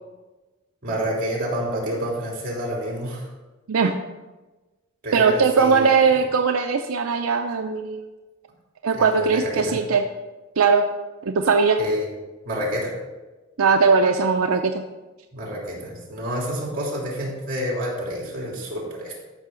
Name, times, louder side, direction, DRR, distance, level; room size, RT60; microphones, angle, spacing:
voice 1, 0.8-3.3 5.0-5.9 8.9-9.8 11.8-12.1 12.4-12.9 15.3-19.1, equal, 40° right, -3 dB, 3.1 m, -28 dB
voice 2, 5.1-8.1 8.8-10.0 10.6-10.8 11.2-11.8 13.6-14.8, right 5 dB, 80° right, 5 dB, 0.5 m, -19 dB
13.5 x 5.7 x 3.8 m, 1.2 s
head